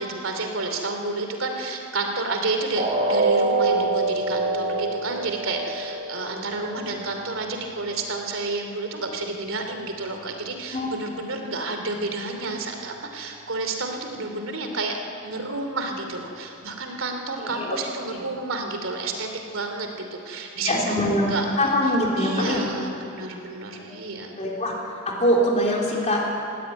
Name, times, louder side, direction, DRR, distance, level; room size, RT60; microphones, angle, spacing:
voice 1, 0.0-15.0 15.2-21.7 22.1-24.4, right 3 dB, 80° right, 4 dB, 2.9 m, -30 dB
sound 1, 2.8-8.7 9.1-9.3 9.8-9.9, right 2 dB, 35° right, 5.8 m, -26 dB
voice 2, 17.4-17.8 18.1-18.2 20.6-22.6 23.8-23.9 24.4-24.7 25.0-26.2, equal, 35° left, -2 dB, 3.4 m, -23 dB
19.0 x 16.5 x 9.2 m, 2.8 s
head